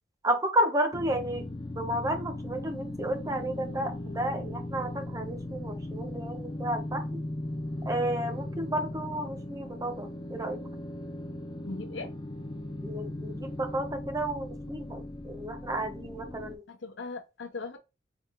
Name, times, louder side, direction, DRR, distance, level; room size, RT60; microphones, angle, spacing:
voice 1, 0.2-1.5 1.8-7.2 7.8-10.6 12.8-16.6, right 1 dB, 20° right, 0.6 m, -32 dB
sound 1, 0.9-16.6, left 1 dB, 25° left, 0.4 m, -38 dB
voice 2, 11.6-12.1 16.7-17.8, left 3 dB, 85° left, 0.8 m, -38 dB
3.7 x 3.5 x 2.9 m
head